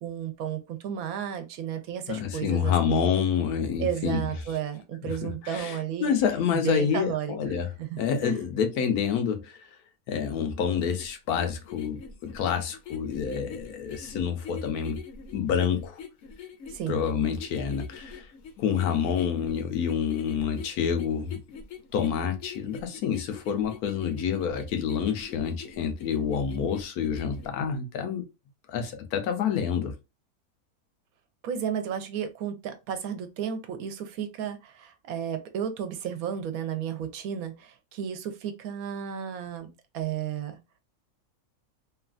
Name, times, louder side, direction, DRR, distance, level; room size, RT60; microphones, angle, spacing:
voice 1, 0.0-3.0 3.8-6.1 6.5-7.4 7.8-8.4 16.7-17.0 31.4-40.6, right 8 dB, 75° right, 1.0 m, -33 dB
voice 2, 2.1-4.2 5.0-7.7 8.0-9.6 10.1-15.0 15.3-16.0 16.9-18.3 18.6-21.4 21.9-28.2 28.7-29.9, left 7 dB, 90° left, 1.1 m, -28 dB
sound 1, 11.0-27.5, left 6 dB, 65° left, 0.8 m, -44 dB
3.1 x 2.3 x 2.4 m
omnidirectional pair, 1.6 m